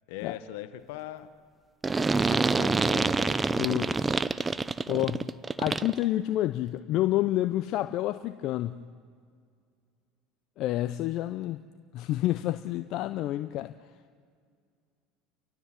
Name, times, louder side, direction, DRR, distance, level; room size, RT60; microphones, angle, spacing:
voice 1, 0.1-1.3 2.0-3.6, left 13 dB, 75° left, 12 dB, 1.2 m, -41 dB
sound 1, 1.8-6.0, right 4 dB, 20° right, 0.6 m, -26 dB
voice 2, 3.6-3.9 4.9-5.3 5.6-8.8 10.6-11.6 11.9-13.7, left 14 dB, 60° left, 10 dB, 0.6 m, -29 dB
29.5 x 13.5 x 7.4 m, 2.1 s
hypercardioid pair, 90°, 0 cm